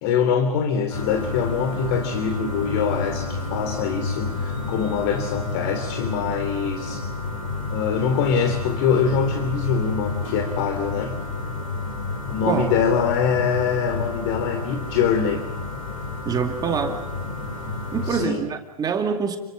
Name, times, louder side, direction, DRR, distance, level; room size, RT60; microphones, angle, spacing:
voice 1, 0.0-7.0 7.7-11.2 12.3-15.5 18.0-18.4, left 6 dB, 45° left, 7 dB, 2.9 m, -24 dB
sound 1, 0.9-18.3, left 3 dB, 65° left, 7.5 m, -30 dB
voice 2, 16.3-17.0 17.9-19.4, right 6 dB, 20° right, 5 dB, 2.2 m, -25 dB
29.5 x 24.0 x 7.5 m, 0.98 s
figure-of-eight pair, 100°, 19 cm